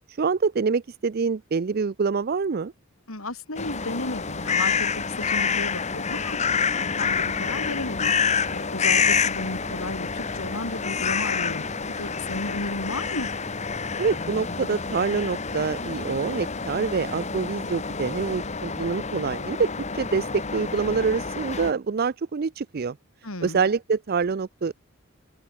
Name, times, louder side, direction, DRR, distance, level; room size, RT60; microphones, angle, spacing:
voice 1, 0.1-2.7 14.0-23.0 23.4-24.7, right 5 dB, 45° right, 0.4 m, -26 dB
voice 2, 3.1-13.3 23.2-23.7, left 2 dB, 75° left, 5.0 m, -34 dB
sound 1, 3.6-21.7, left 5 dB, 30° left, 1.3 m, -28 dB
sound 2, 7.0-17.7, right 1 dB, 80° right, 3.7 m, -48 dB
head